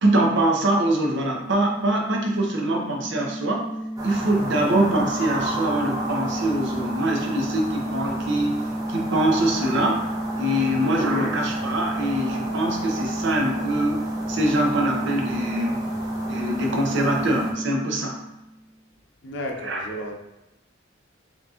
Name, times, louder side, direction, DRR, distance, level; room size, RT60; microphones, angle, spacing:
voice 1, 0.0-3.7 4.0-8.6 8.9-10.0 10.3-15.8 16.3-18.2 19.6-19.9, right 1 dB, 65° right, 1 dB, 0.7 m, -23 dB
sound 1, 1.2-18.7, equal, 25° left, 0.3 m, -31 dB
sound 2, 4.0-17.5, right 2 dB, 20° right, 0.7 m, -34 dB
voice 2, 19.2-20.1, equal, 65° left, 2 dB, 0.6 m, -33 dB
5.2 x 2.9 x 2.4 m, 0.93 s
head